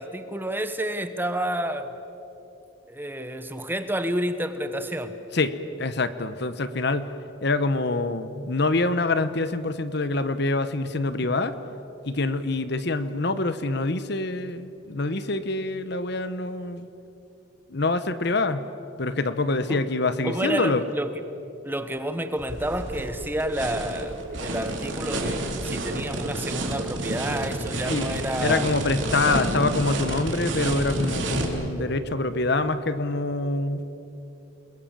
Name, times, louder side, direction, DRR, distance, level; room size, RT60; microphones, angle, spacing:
voice 1, 0.0-2.0 2.9-5.1 19.7-19.8 20.2-21.1 21.6-28.6, right 1 dB, 10° right, 9 dB, 1.1 m, -30 dB
voice 2, 5.3-7.1 7.4-11.6 12.0-16.9 17.7-18.7 19.0-20.8 27.9-28.1 28.4-33.8, left 2 dB, 55° left, 12 dB, 1.0 m, -25 dB
sound 1, 22.4-31.5, right 1 dB, 65° right, 3.4 m, -30 dB
sound 2, 22.9-32.7, right 2 dB, 45° right, 0.9 m, -39 dB
28.5 x 21.0 x 7.4 m, 2.9 s
head